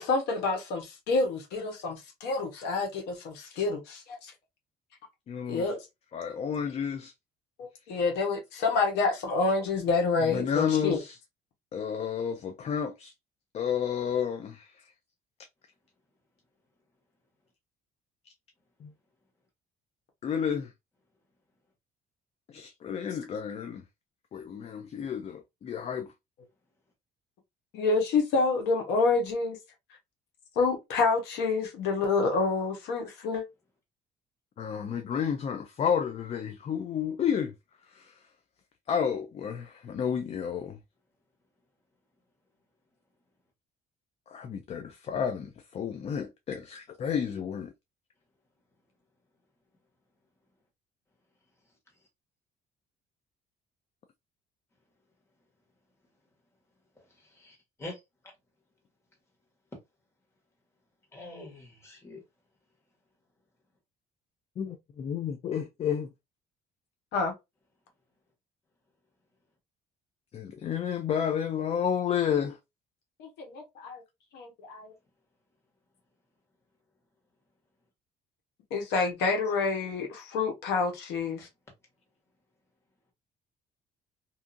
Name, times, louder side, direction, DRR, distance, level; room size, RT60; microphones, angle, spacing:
voice 1, 0.0-4.3 5.5-5.8 7.6-11.0 27.7-29.6 30.6-33.4 67.1-67.3 73.2-74.0 74.3-74.9 78.7-81.5, left 4 dB, 85° left, 1.0 m, -28 dB
voice 2, 5.3-5.7 6.1-7.1 10.2-11.2 11.7-13.1 13.5-14.7 18.8-18.9 20.2-20.7 22.5-23.8 24.3-26.1 34.6-37.5 37.9-38.1 38.9-40.8 44.3-47.7 64.6-66.1 70.3-72.6, left 8 dB, 40° left, 0.4 m, -31 dB
voice 3, 57.0-58.0 61.1-62.2 81.4-81.5, left 2 dB, 15° left, 1.4 m, -45 dB
2.7 x 2.4 x 2.5 m
cardioid pair, 110°, 17 cm